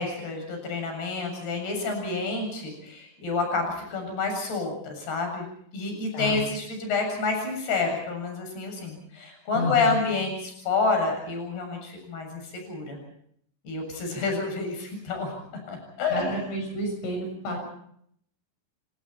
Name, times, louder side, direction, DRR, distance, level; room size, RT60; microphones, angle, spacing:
voice 1, 0.0-5.5 5.7-13.0 13.6-15.4 15.7-16.4, left 3 dB, 55° left, 4 dB, 9.3 m, -29 dB
voice 2, 9.5-10.0 14.1-14.2 16.1-17.6, left 1 dB, 75° left, 3 dB, 9.0 m, -30 dB
29.0 x 27.0 x 4.4 m, 0.67 s
omnidirectional pair, 5.6 m